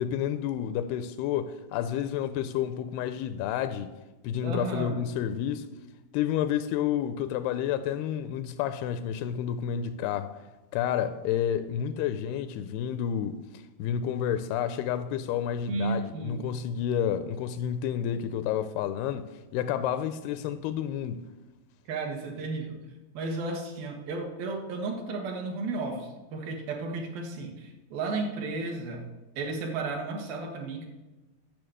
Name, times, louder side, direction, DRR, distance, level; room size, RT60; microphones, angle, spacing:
voice 1, 0.0-3.9 4.2-5.7 6.1-10.4 10.7-19.3 19.5-21.3, left 9 dB, 85° left, 2.5 m, -30 dB
voice 2, 4.4-5.0 15.7-16.5 21.9-22.8 23.1-29.0 29.4-30.9, right 3 dB, 65° right, 3.0 m, -33 dB
10.5 x 6.5 x 7.7 m
omnidirectional pair, 4.6 m